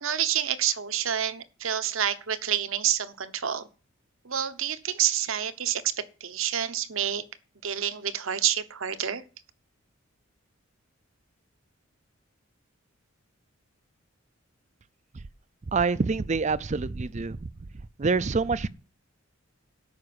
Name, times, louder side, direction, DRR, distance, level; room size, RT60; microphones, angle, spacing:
voice 1, 0.0-3.7 4.2-5.8 6.2-7.2 7.6-9.2, right 9 dB, 70° right, 1.0 m, -28 dB
voice 2, 15.7-17.5 18.0-18.7, right 4 dB, 35° right, 0.5 m, -26 dB
12.5 x 5.3 x 8.7 m
head